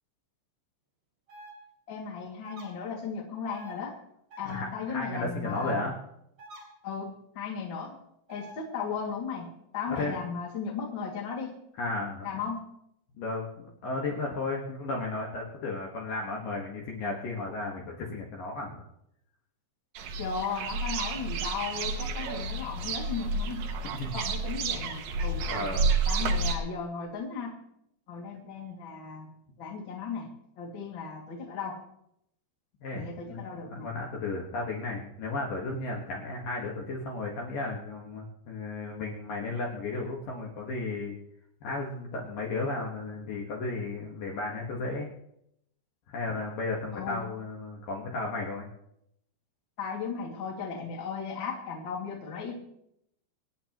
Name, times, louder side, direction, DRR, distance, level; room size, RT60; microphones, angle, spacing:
sound 1, 1.3-1.5 2.4-2.7 3.5-3.7 4.3-4.6 5.5-5.7 6.4-6.6 8.3-8.5 9.9-10.2, equal, 40° right, 3.5 m, -47 dB
voice 1, 1.9-4.0 4.4-5.9 6.8-8.0 8.3-11.6 12.2-12.6 20.2-23.7 24.1-25.8 26.1-27.6 28.1-29.3 29.6-31.8 32.9-33.9 46.9-47.2 49.8-52.5, left 5 dB, 35° left, -1 dB, 2.2 m, -36 dB
voice 2, 4.4-6.0 9.9-10.2 11.7-12.3 13.2-18.9 24.0-24.1 25.4-25.9 32.8-41.1 41.6-45.1 46.1-48.7, left 3 dB, 60° left, -2 dB, 2.7 m, -34 dB
sound 2, 20.0-26.6, right 3 dB, 75° right, 2.1 m, -30 dB
27.0 x 9.5 x 3.0 m, 0.78 s
omnidirectional pair, 5.2 m